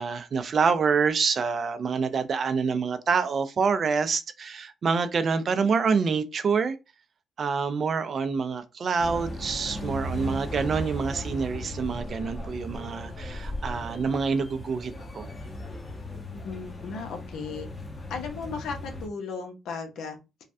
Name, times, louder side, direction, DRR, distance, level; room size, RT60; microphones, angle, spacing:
voice 1, 0.0-6.8 7.4-15.3, right 5 dB, 50° right, 0.4 m, -26 dB
sound 1, 9.0-19.1, left 1 dB, 25° left, 0.9 m, -37 dB
voice 2, 16.3-17.7 18.1-20.4, left 5 dB, 75° left, 0.8 m, -36 dB
3.1 x 2.3 x 2.6 m
cardioid pair, 90°, 0 cm